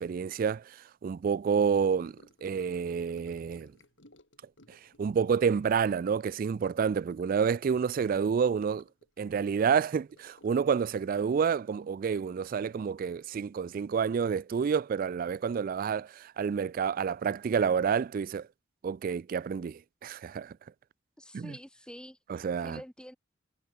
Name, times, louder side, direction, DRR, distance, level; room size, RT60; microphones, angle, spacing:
voice 1, 0.0-3.7 4.7-8.8 9.2-18.5 18.8-20.5 21.3-21.5 22.3-22.8, right 6 dB, 45° right, 0.3 m, -29 dB
Gurgling / Sink (filling or washing) / Trickle dribble, 1.6-13.2 13.5-13.8 14.1-14.2, left 1 dB, 70° left, 6.5 m, -62 dB
voice 2, 21.2-23.2, equal, 5° left, 3.6 m, -47 dB
head